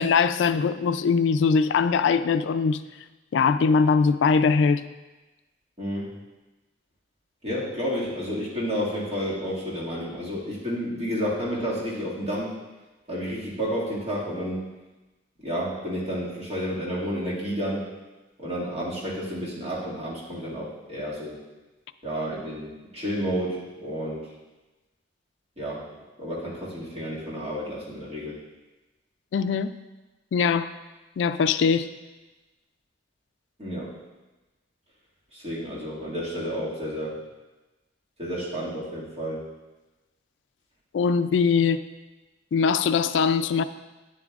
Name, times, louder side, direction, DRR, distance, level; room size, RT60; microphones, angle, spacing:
voice 1, 0.0-2.8 3.3-4.8 29.3-29.7 30.3-30.7 31.2-31.9 40.9-41.8 42.5-43.6, left 5 dB, 85° left, 12 dB, 0.3 m, -21 dB
voice 2, 5.8-6.2 7.4-12.6 13.1-14.7 15.4-17.9 18.4-21.4 22.0-24.3 25.6-25.9 26.2-28.4 33.6-34.0 35.3-37.2 38.2-39.4, equal, 35° right, -6 dB, 2.0 m, -31 dB
9.6 x 7.4 x 2.4 m, 1.1 s
head